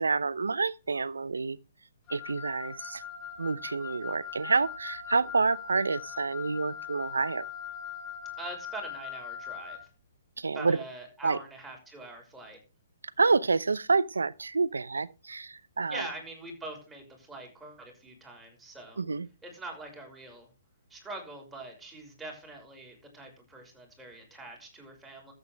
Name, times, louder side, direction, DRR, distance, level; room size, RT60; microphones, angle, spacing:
voice 1, 0.0-1.6 2.1-3.0 3.4-7.5 10.4-10.8 11.2-11.4 13.2-16.0 19.0-19.3, right 4 dB, 90° right, 0.8 m, -28 dB
Wind instrument woodwind instrument, 2.1-9.8, left 8 dB, 20° left, 6.0 m, -41 dB
voice 2, 8.4-9.8 10.5-12.6 15.9-19.0 19.4-20.5 20.9-25.3, right 2 dB, 5° right, 5.9 m, -43 dB
13.5 x 8.4 x 3.5 m
hypercardioid pair, 140°, 0 cm